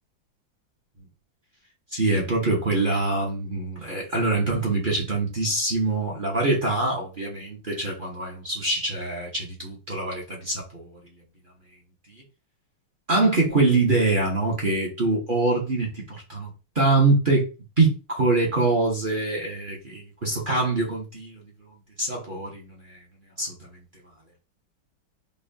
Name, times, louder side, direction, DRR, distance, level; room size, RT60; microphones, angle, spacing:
voice 1, 1.9-11.0 13.1-16.5 16.7-17.5 17.8-21.4 22.0-23.0 23.4-23.5, right 3 dB, 40° right, 0.8 m, -24 dB
5.3 x 2.3 x 2.7 m
omnidirectional pair, 2.2 m